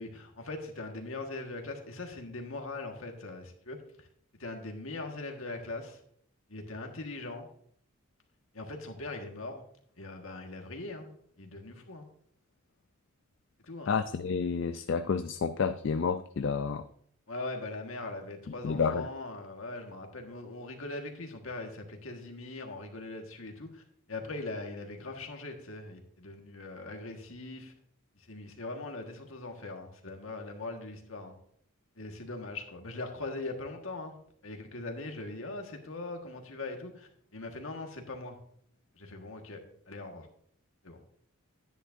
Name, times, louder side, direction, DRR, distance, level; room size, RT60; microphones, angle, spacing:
voice 1, 0.0-4.1 4.4-6.0 6.5-7.5 8.5-9.6 10.0-11.1 11.4-12.0 13.7-13.9 17.3-23.8 24.1-27.7 28.2-31.3 32.0-34.1 34.4-38.4 39.0-39.6 39.9-40.3 40.8-41.0, left 2 dB, 75° left, 3 dB, 1.5 m, -41 dB
voice 2, 13.9-16.9 18.5-19.1, left 5 dB, 60° left, 10 dB, 0.3 m, -30 dB
10.5 x 9.9 x 2.6 m, 0.64 s
head